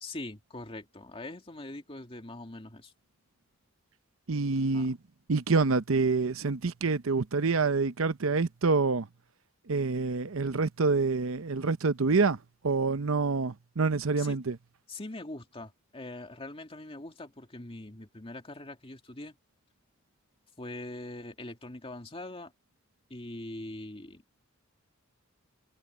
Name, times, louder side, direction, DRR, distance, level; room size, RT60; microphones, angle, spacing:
voice 1, 0.0-2.9 4.7-4.9 14.2-14.4 14.9-19.3 20.6-22.5 23.1-24.2, left 2 dB, 25° left, 2.4 m, -42 dB
voice 2, 4.3-5.0 5.3-9.1 9.7-12.4 12.6-14.6, right 4 dB, 75° right, 0.8 m, -27 dB
head